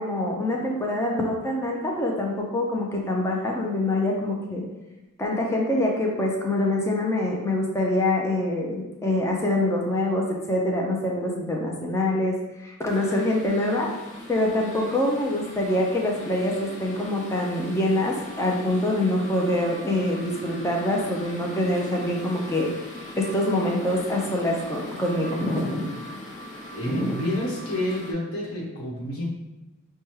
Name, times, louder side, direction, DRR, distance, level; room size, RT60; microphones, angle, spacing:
voice 1, 0.0-4.6 5.2-12.3 12.6-13.9 14.3-22.7 23.2-25.9 26.9-27.1, left 1 dB, 15° left, -1 dB, 0.5 m, -25 dB
sound 1, 12.9-28.1, left 1 dB, 35° left, 0.8 m, -40 dB
voice 2, 26.7-29.2, left 1 dB, 75° left, -4 dB, 1.1 m, -29 dB
5.7 x 2.2 x 3.1 m, 1.1 s
head